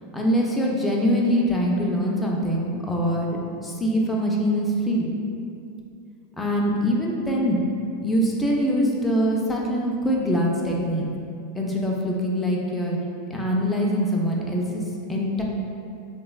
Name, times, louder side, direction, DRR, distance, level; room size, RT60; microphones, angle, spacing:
voice 1, 0.1-5.1 6.4-7.6 8.0-11.1 11.6-13.0 13.3-14.8 15.1-15.4, equal, 10° left, -2 dB, 0.4 m, -23 dB
3.1 x 2.0 x 2.2 m, 2.5 s
hypercardioid pair, 110°, 0 cm